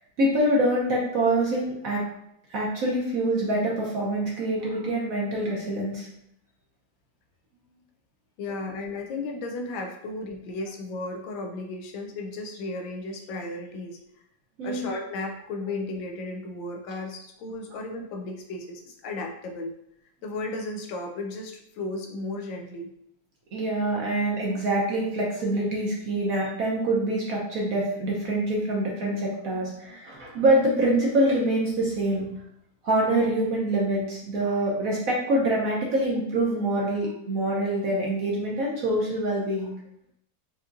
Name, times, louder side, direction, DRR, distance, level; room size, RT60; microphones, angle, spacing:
voice 1, 0.2-2.0 2.5-6.1 14.6-14.8 23.5-32.3 32.8-39.7, right 1 dB, 60° right, -3 dB, 1.0 m, -25 dB
voice 2, 8.4-14.0 14.6-19.7 20.2-22.9, left 2 dB, 85° left, 3 dB, 1.4 m, -34 dB
4.9 x 2.8 x 2.5 m, 0.74 s
omnidirectional pair, 2.1 m